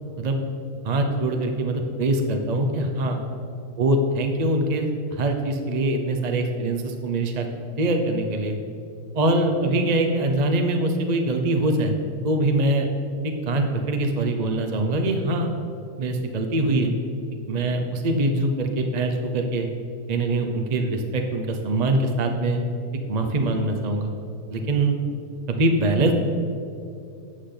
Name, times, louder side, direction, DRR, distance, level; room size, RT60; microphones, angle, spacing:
voice 1, 0.8-3.2 3.8-7.5 7.8-8.6 9.1-12.0 12.2-12.9 13.2-15.5 16.0-16.9 17.5-19.7 20.1-22.6 23.1-24.1 24.5-25.0 25.5-26.1, right 2 dB, 35° right, 4 dB, 0.7 m, -23 dB
12.5 x 8.6 x 3.9 m, 2.7 s
omnidirectional pair, 1.7 m